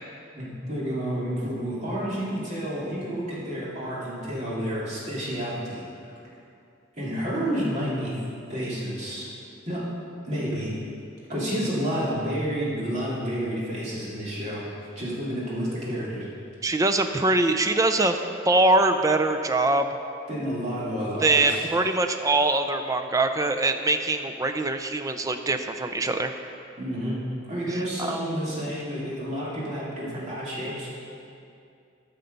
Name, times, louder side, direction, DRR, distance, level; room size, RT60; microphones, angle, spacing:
voice 1, 0.4-5.8 7.0-8.1 8.5-9.3 9.7-9.8 10.2-10.7 11.3-14.6 15.0-16.3 20.3-21.6 26.8-27.2 27.5-30.9, equal, 35° right, -8 dB, 2.7 m, -30 dB
voice 2, 16.6-18.2 18.5-19.9 21.2-26.4 27.7-28.2, right 2 dB, 15° right, 7 dB, 0.4 m, -23 dB
13.5 x 5.7 x 5.2 m, 2.5 s
head